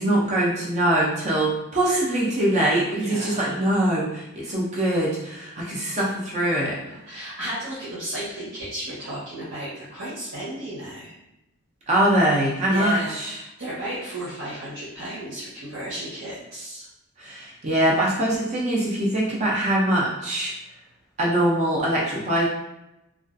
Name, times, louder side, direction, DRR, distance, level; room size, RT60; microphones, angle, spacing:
voice 1, 0.0-6.8 11.9-13.4 17.2-20.5 21.2-22.5, right 1 dB, 35° right, -4 dB, 0.5 m, -23 dB
voice 2, 2.9-3.6 6.9-11.1 12.7-16.9, right 1 dB, 65° right, -10 dB, 0.9 m, -34 dB
2.3 x 2.3 x 2.5 m, 0.89 s
head